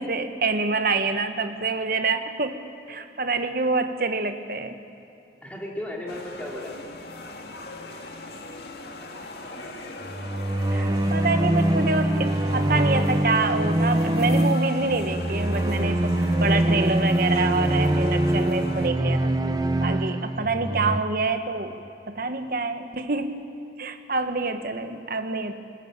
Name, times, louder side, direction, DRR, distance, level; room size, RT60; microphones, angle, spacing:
voice 1, 0.0-2.6 2.9-4.8 9.6-9.7 10.7-19.3 19.8-23.5 23.8-25.5, right 3 dB, 55° right, 8 dB, 1.3 m, -27 dB
voice 2, 5.4-6.8 20.4-20.8, left 1 dB, 10° left, -2 dB, 3.3 m, -36 dB
sound 1, 6.1-18.9, left 2 dB, 65° left, 2.0 m, -40 dB
sound 2, 10.0-21.0, right 1 dB, 20° right, 0.8 m, -23 dB
20.0 x 20.0 x 9.1 m, 2.7 s
head